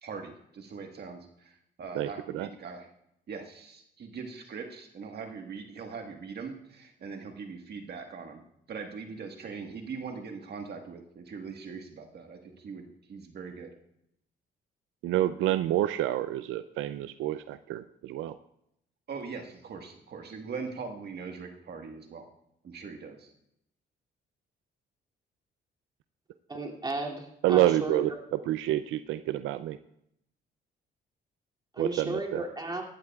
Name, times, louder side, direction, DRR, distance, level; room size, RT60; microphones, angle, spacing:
voice 1, 0.0-2.9 3.3-8.4 8.7-13.7 19.1-22.3 22.6-23.3, right 5 dB, 55° right, 4 dB, 1.5 m, -41 dB
voice 2, 15.0-18.4 27.4-29.8 31.8-32.4, right 13 dB, 85° right, 12 dB, 0.4 m, -28 dB
voice 3, 26.5-28.2 31.7-32.8, right 2 dB, 20° right, 0 dB, 2.6 m, -34 dB
17.5 x 12.5 x 2.4 m, 0.76 s
cardioid pair, 90°, 20 cm